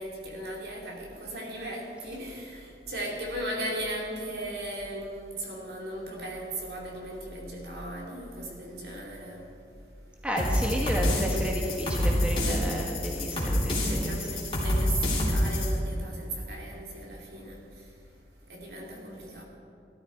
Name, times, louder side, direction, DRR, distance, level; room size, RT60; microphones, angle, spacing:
voice 1, 0.0-9.5 13.8-17.9 18.5-19.4, right 1 dB, 60° right, -2 dB, 2.8 m, -37 dB
voice 2, 10.2-14.3, equal, 5° right, -1 dB, 1.3 m, -32 dB
sound 1, 10.4-15.7, left 1 dB, 30° left, 3.3 m, -27 dB
15.5 x 13.5 x 4.6 m, 2.6 s
head